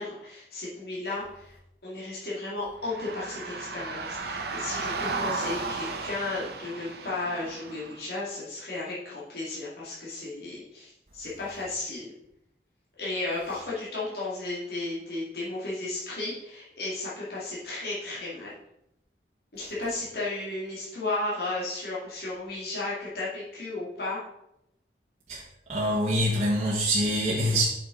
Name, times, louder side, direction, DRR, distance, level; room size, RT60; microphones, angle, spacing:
voice 1, 0.0-1.6 1.8-12.1 13.0-18.5 19.5-24.2 27.4-27.7, left 2 dB, 60° left, 2.4 m, -34 dB
sound 1, 2.8-8.0, right 3 dB, 65° right, 0.9 m, -34 dB
voice 2, 25.7-27.7, equal, 40° right, 1.5 m, -25 dB
8.6 x 5.9 x 3.9 m
head